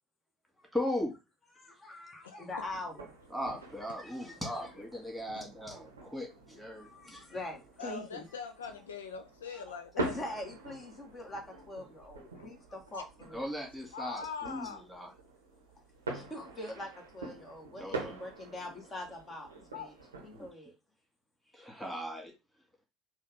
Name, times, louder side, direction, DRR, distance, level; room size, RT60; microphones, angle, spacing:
voice 1, 0.7-1.1 3.3-7.2 13.3-15.1 17.8-18.2 20.3-20.5 21.5-22.3, left 1 dB, ahead, 1.9 m, -38 dB
voice 2, 1.5-3.1 4.0-4.1 6.7-8.2 9.5-13.5 16.1-19.5 19.7-19.9 20.2-20.7, left 1 dB, 35° left, 1.5 m, -43 dB
sound 1, 2.5-20.5, right 2 dB, 85° right, 0.7 m, -45 dB
voice 3, 7.8-10.4 12.4-12.5 12.9-13.0 13.9-14.8 19.7-19.9, left 5 dB, 80° left, 0.3 m, -42 dB
4.2 x 2.4 x 3.4 m
figure-of-eight pair, 55°, 0 cm